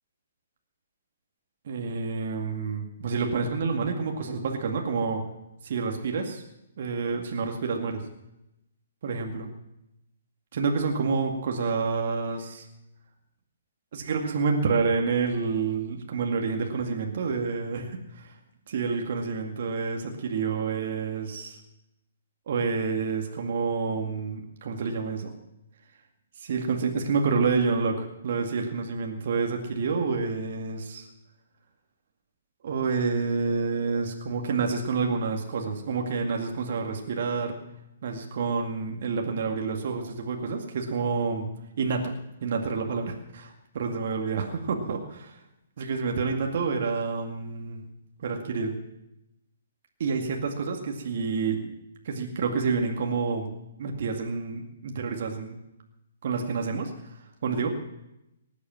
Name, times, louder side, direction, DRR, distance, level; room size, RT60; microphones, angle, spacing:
voice 1, 1.7-5.2 5.6-6.4 6.8-8.0 9.0-9.5 10.5-12.7 13.9-18.3 18.7-21.6 22.5-25.3 26.4-31.1 32.6-37.6 38.0-41.5 41.8-42.1 42.4-45.4 45.8-47.8 48.2-48.7 50.0-51.7 52.0-53.5 53.8-55.6 56.2-57.7, right 4 dB, 55° right, 2 dB, 2.2 m, -28 dB
18.5 x 8.4 x 7.5 m, 0.87 s
hypercardioid pair, 135°, 0 cm